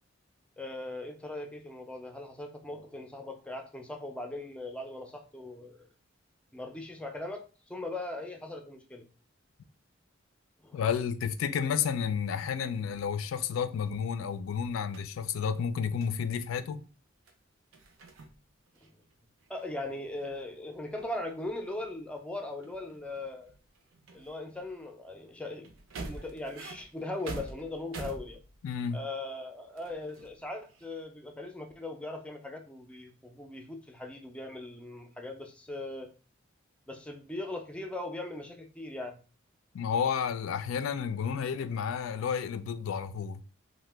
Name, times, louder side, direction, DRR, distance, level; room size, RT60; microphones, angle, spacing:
voice 1, 0.6-5.9 6.5-9.0 10.6-10.8 18.8-18.9 19.5-23.6 24.1-28.4 28.9-36.1 36.9-39.2, left 2 dB, 5° left, 0.4 m, -39 dB
voice 2, 10.7-16.8 28.6-29.0 39.7-43.4, left 7 dB, 90° left, 0.3 m, -31 dB
sound 1, 13.6-15.1 15.9-16.2 17.2-17.3 17.6-18.4 18.7-29.3 29.7-31.0, right 3 dB, 90° right, 0.6 m, -48 dB
2.8 x 2.1 x 3.3 m
head